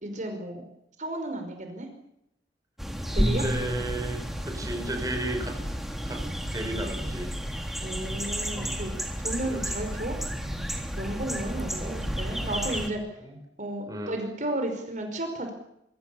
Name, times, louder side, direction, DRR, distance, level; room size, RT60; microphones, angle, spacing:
voice 1, 0.0-0.7 1.0-1.9 3.1-3.4 7.8-10.2 11.0-13.0 13.6-15.5, right 1 dB, 45° right, 5 dB, 5.2 m, -33 dB
sound 1, 2.8-12.9, equal, ahead, 3.4 m, -31 dB
voice 2, 3.2-5.5 6.0-6.2 6.5-7.3 9.4-9.7 11.8-11.9 13.2-13.4 13.9-14.1, right 1 dB, 20° right, 3 dB, 5.9 m, -34 dB
25.0 x 25.0 x 7.1 m, 0.79 s
head